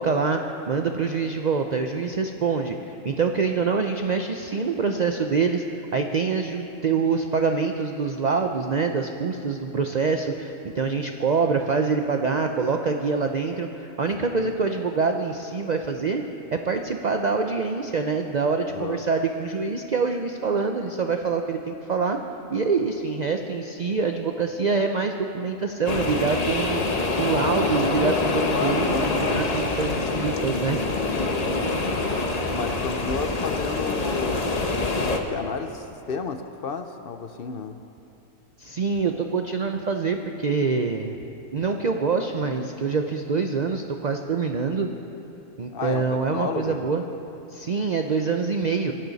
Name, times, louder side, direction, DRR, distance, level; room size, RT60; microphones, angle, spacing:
voice 1, 0.0-5.6 5.9-16.2 16.5-22.2 22.5-30.8 38.6-41.2 41.5-44.9 45.6-47.0 47.5-48.9, right 4 dB, 55° right, 4 dB, 0.4 m, -25 dB
voice 2, 18.7-19.0 28.0-29.5 30.9-31.6 32.5-34.5 35.0-37.8 45.7-46.9, left 5 dB, 60° left, 8 dB, 0.6 m, -32 dB
sound 1, 25.9-35.2, left 3 dB, 30° left, 0.9 m, -25 dB
24.0 x 12.0 x 4.1 m, 2.9 s
omnidirectional pair, 1.6 m